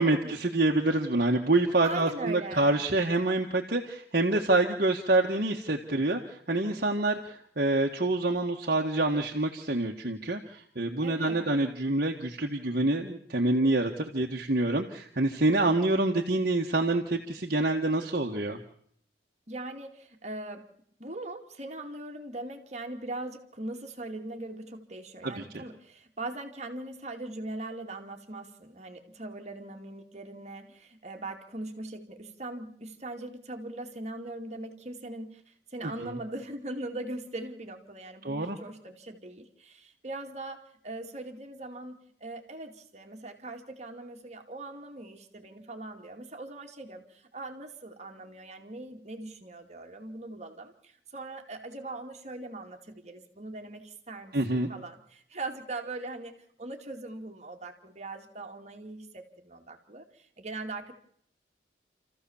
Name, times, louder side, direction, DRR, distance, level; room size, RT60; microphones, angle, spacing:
voice 1, 0.0-18.6 25.2-25.6 35.8-36.1 38.2-38.6 54.3-54.7, right 2 dB, 55° right, 1 dB, 1.6 m, -27 dB
voice 2, 1.8-2.8 11.0-11.5 19.5-20.6 21.0-54.4 54.7-56.3 56.6-60.9, right 2 dB, 40° right, 4 dB, 2.4 m, -40 dB
29.0 x 14.5 x 7.2 m, 0.67 s
head